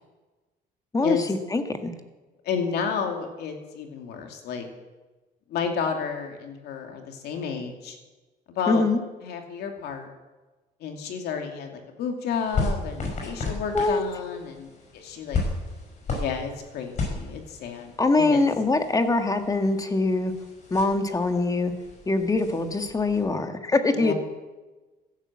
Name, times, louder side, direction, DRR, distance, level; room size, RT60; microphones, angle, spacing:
voice 1, 0.9-1.9 8.7-9.0 13.7-14.0 18.0-20.3 20.7-21.7 22.1-24.1, left 3 dB, 20° left, 7 dB, 1.6 m, -23 dB
voice 2, 2.4-4.7 5.5-8.0 8.5-8.8 9.2-10.1 10.8-15.4 16.2-18.5 23.9-24.1, left 6 dB, 75° left, 4 dB, 2.7 m, -31 dB
sound 1, 12.3-23.2, left 3 dB, 45° left, 5.7 m, -34 dB
15.0 x 11.5 x 7.5 m, 1.2 s
cardioid pair, 110°, 17 cm